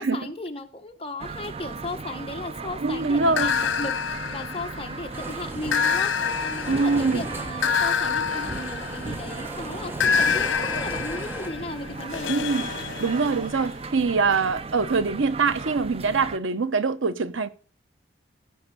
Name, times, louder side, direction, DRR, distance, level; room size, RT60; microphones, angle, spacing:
voice 1, 0.0-12.5, left 2 dB, 30° left, 1.4 m, -36 dB
sound 1, 1.2-16.4, right 3 dB, 30° right, 0.5 m, -36 dB
voice 2, 2.8-3.5 6.7-7.2 12.3-12.7 13.0-17.5, right 4 dB, 85° right, 0.8 m, -24 dB
sound 2, 3.4-5.1 5.7-9.4 10.0-13.7, left 7 dB, 85° left, 1.0 m, -27 dB
sound 3, 5.1-11.5, right 1 dB, 10° right, 1.0 m, -39 dB
16.0 x 5.6 x 6.7 m
head